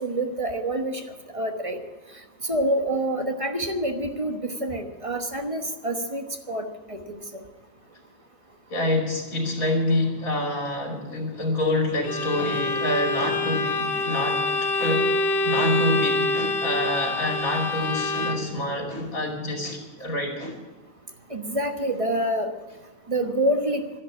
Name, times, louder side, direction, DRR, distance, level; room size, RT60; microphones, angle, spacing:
voice 1, 0.0-1.8 2.4-7.2 21.3-22.5 23.1-23.8, right 1 dB, 25° right, 5 dB, 1.1 m, -27 dB
voice 2, 8.7-15.1 15.4-20.6, left 1 dB, 80° left, 1 dB, 3.3 m, -27 dB
Bowed string instrument, 12.0-18.6, left 2 dB, 45° left, 1.1 m, -26 dB
12.0 x 11.0 x 8.6 m, 1.2 s
omnidirectional pair, 1.4 m